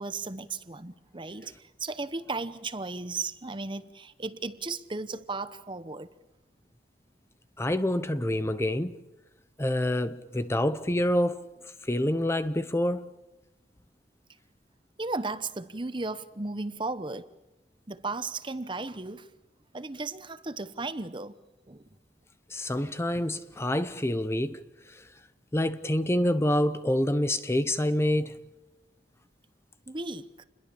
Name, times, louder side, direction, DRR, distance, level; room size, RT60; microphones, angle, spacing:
voice 1, 0.0-6.1 15.0-17.3 17.9-19.3 19.7-21.4 21.7-21.8 29.9-30.4, right 3 dB, 30° right, 1.0 m, -35 dB
voice 2, 7.6-9.0 9.6-11.5 11.8-13.1 22.5-24.6 24.9-25.0 25.5-28.4, left 1 dB, 15° left, 0.8 m, -27 dB
29.5 x 21.5 x 7.1 m
head